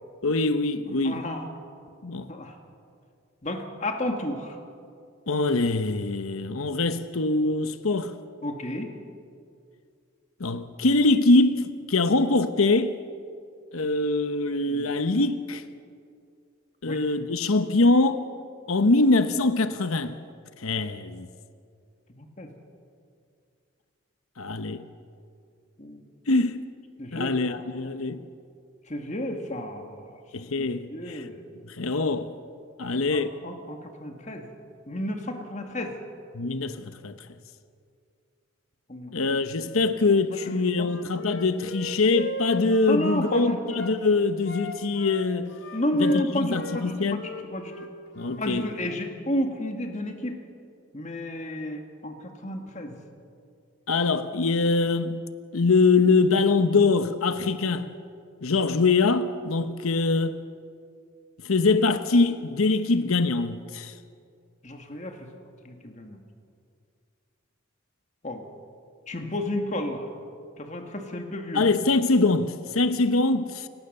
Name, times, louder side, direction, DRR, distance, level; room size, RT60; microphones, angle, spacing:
voice 1, 0.2-1.2 2.0-2.3 5.3-8.1 10.4-13.0 13.7-15.6 16.8-18.2 18.7-20.2 20.6-21.3 24.4-24.8 26.3-26.6 27.1-28.3 30.3-31.3 31.7-32.3 32.8-33.3 36.3-37.2 39.1-45.5 46.0-47.3 48.2-48.7 53.9-55.2 55.5-57.9 58.4-60.4 61.4-63.9 71.5-73.7, left 3 dB, 90° left, 1.0 m, -23 dB
voice 2, 1.0-1.5 2.3-2.5 3.4-4.6 8.4-8.9 14.7-14.9 16.9-17.0 22.2-22.5 25.8-26.0 27.0-27.6 28.9-30.2 30.6-31.4 32.8-34.5 34.9-35.9 38.9-39.1 40.4-40.9 42.9-43.6 45.7-46.9 47.2-47.8 48.4-50.4 50.9-53.0 64.6-65.3 65.6-66.2 68.2-68.4 69.1-70.1 70.6-71.6, left 1 dB, 35° left, 2.1 m, -31 dB
Wind instrument woodwind instrument, 40.3-44.0 44.4-46.9 47.1-48.5, left 1 dB, 55° left, 1.7 m, -38 dB
29.0 x 17.0 x 6.7 m
head